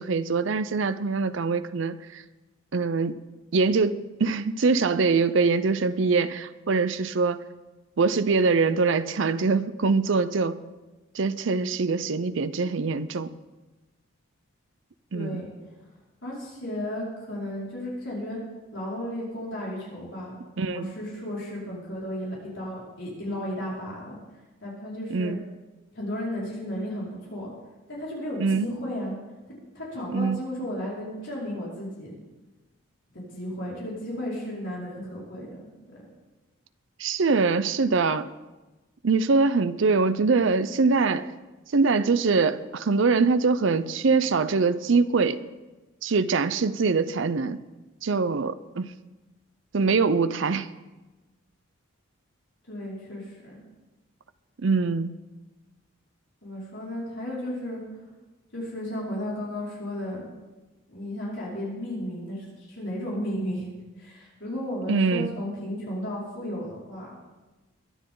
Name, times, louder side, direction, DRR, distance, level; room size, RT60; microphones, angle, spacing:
voice 1, 0.0-2.2 2.7-3.2 3.5-7.4 8.0-10.6 11.1-13.3 15.1-15.4 20.6-20.9 25.1-25.4 28.4-28.7 30.1-30.4 37.0-38.3 39.0-41.3 41.7-45.4 46.0-47.6 48.0-48.9 49.7-50.7 54.6-55.1 64.9-65.3, right 4 dB, 60° right, 13 dB, 0.5 m, -23 dB
voice 2, 15.1-15.5 16.2-18.4 18.7-20.3 20.7-24.2 24.6-25.3 25.9-27.5 27.9-29.1 29.7-32.1 33.3-36.0 52.7-53.6 56.4-57.8 58.5-60.2 60.9-63.6 64.0-67.1, equal, 60° left, -6 dB, 5.0 m, -34 dB
22.5 x 10.0 x 3.8 m, 1.1 s
head